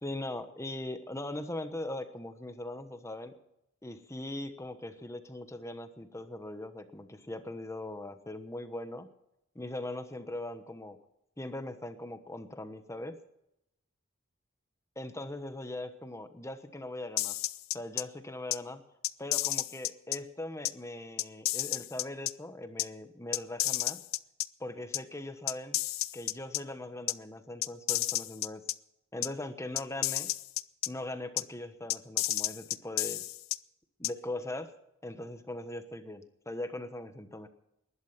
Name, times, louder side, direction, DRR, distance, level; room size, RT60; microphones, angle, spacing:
voice 1, 0.0-3.3 3.8-9.1 9.5-11.0 11.4-13.2 15.0-17.4 17.7-18.8 19.2-24.0 24.6-25.8 26.1-28.6 29.1-30.3 30.9-33.2 34.0-34.7 35.0-37.5, left 1 dB, 15° left, 9 dB, 1.2 m, -40 dB
sound 1, 17.2-18.0 18.5-18.6 19.0-20.2 20.6-20.7 21.2-22.3 22.8-22.9 23.3-24.5 24.9-25.0 25.5-26.6 27.1-27.2 27.6-28.7 29.2-29.3 29.8-30.9 31.4-31.5 31.9-33.6 34.0-34.1, left 16 dB, 75° left, 0.5 m, -31 dB
19.5 x 11.5 x 5.9 m, 0.82 s
head